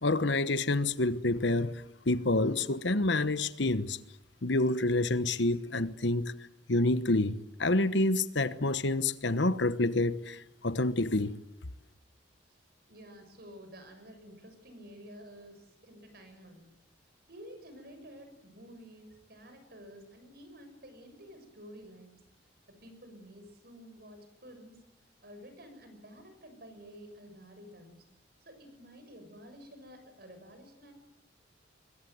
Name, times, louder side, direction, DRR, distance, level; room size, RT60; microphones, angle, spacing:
voice 1, 0.0-4.0 4.4-6.3 6.7-11.4, left 2 dB, 65° left, 1.2 m, -28 dB
voice 2, 12.9-16.7 17.3-22.2 22.7-24.8 25.2-28.0 28.4-30.9, equal, 55° right, 6.6 m, -51 dB
24.5 x 22.5 x 9.4 m
head